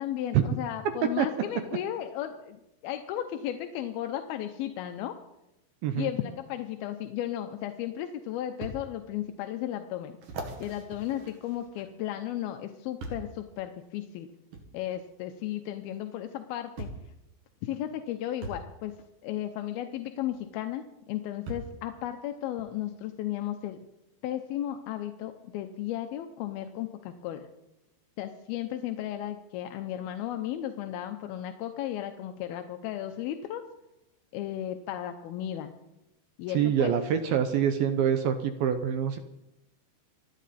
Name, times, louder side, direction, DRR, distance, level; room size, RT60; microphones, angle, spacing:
voice 1, 0.0-5.1 6.0-10.2 10.6-14.3 14.7-16.9 17.6-18.9 19.2-23.8 24.2-27.5 28.2-33.6 34.3-35.7 36.4-36.9, left 12 dB, 75° left, 6 dB, 2.4 m, -34 dB
sound 1, 8.6-8.8 9.4-9.5 10.2-12.1 13.0-13.4 14.5-14.7 15.9-16.0 16.8-17.1 18.4-18.7 20.3-20.4 21.5-21.8 22.6-22.7, right 2 dB, 55° right, 3.1 m, -40 dB
voice 2, 36.5-39.2, right 9 dB, 75° right, 8 dB, 2.3 m, -25 dB
26.5 x 9.5 x 4.2 m, 0.90 s
omnidirectional pair, 5.0 m